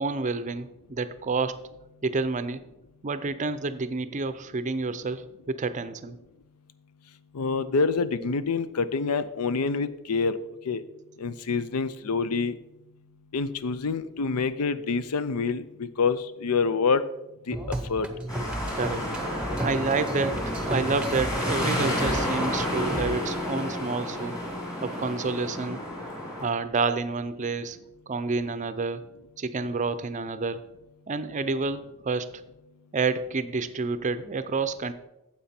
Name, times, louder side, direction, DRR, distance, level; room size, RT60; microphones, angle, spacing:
voice 1, 0.0-1.6 2.0-2.6 3.0-6.2 18.7-19.0 19.6-24.4 24.8-25.8 26.4-27.8 28.1-29.0 29.4-30.6 31.1-32.3 32.9-34.9, right 4 dB, 35° right, 12 dB, 0.5 m, -29 dB
voice 2, 7.3-10.4 10.7-10.8 11.2-12.6 13.3-17.0 17.5-17.6 17.9-18.1, left 4 dB, 85° left, 14 dB, 0.5 m, -26 dB
sound 1, 17.5-23.1, right 1 dB, 5° right, 0.8 m, -33 dB
sound 2, 18.3-26.4, left 1 dB, 15° left, 2.7 m, -30 dB
9.2 x 7.5 x 4.3 m, 0.91 s
head